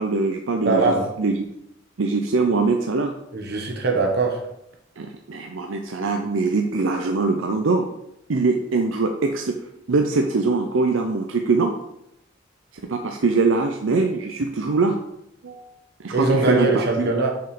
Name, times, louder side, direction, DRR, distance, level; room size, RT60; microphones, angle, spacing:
voice 1, 0.0-1.5 2.0-3.1 5.0-7.9 8.3-9.6 9.9-11.7 12.8-15.0 15.4-15.7 16.0-17.1, right 3 dB, 85° right, 4 dB, 0.6 m, -22 dB
voice 2, 0.6-1.1 3.3-4.4 16.1-17.3, right 3 dB, 60° right, 1 dB, 1.4 m, -21 dB
6.4 x 4.7 x 5.1 m, 0.80 s
head